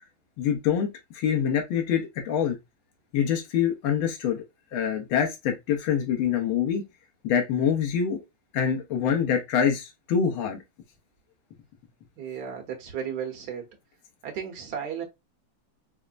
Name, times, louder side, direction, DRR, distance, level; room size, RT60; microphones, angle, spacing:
voice 1, 0.4-2.6 3.1-4.4 4.7-6.8 7.2-8.2 8.5-10.6, left 8 dB, 85° left, 1.7 m, -25 dB
voice 2, 12.2-13.7 14.2-15.1, right 8 dB, 55° right, 1.5 m, -34 dB
5.5 x 2.0 x 2.5 m
omnidirectional pair, 2.2 m